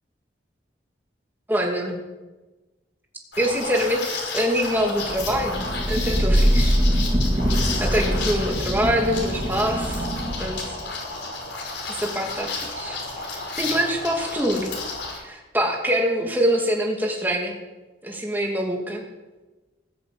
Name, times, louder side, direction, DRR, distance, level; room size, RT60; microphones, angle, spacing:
voice 1, 1.5-2.0 3.4-6.8 7.8-10.1 10.4-10.8 11.9-13.0 13.2-14.7 15.2-17.5 18.0-19.0, equal, 10° right, 0 dB, 2.7 m, -25 dB
Liquid, 3.3-15.2, left 3 dB, 90° left, 5.5 m, -32 dB
Thunder / Rain, 5.0-10.7, equal, 25° right, 1.8 m, -23 dB
20.0 x 8.0 x 8.0 m, 1.2 s
head